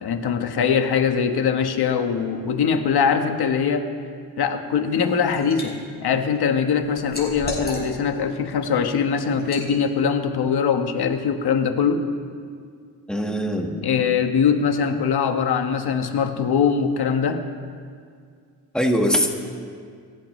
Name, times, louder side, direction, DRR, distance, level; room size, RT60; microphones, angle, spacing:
voice 1, 0.0-3.9 4.4-12.0 13.8-17.4, left 6 dB, 80° left, 6 dB, 1.3 m, -22 dB
Liquid, 4.9-5.7 6.1-8.2 8.6-8.8 9.4-9.7, left 2 dB, 25° left, 4.1 m, -33 dB
voice 2, 13.1-13.7 18.7-19.3, equal, ahead, 1 dB, 1.6 m, -21 dB
28.5 x 14.0 x 3.2 m, 2.1 s
wide cardioid pair, 140°, 38 cm